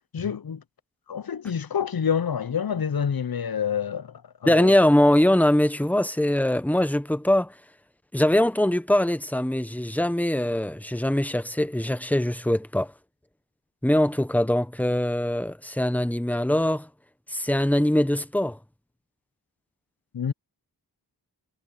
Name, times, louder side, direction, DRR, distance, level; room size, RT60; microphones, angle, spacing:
voice 1, 0.1-0.6 1.1-4.7 20.1-20.3, left 7 dB, 60° left, 0.6 m, -28 dB
voice 2, 4.5-7.5 8.1-12.9 13.8-16.9 17.3-18.6, left 1 dB, 5° left, 1.1 m, -22 dB
wide cardioid pair, 40°, 41 cm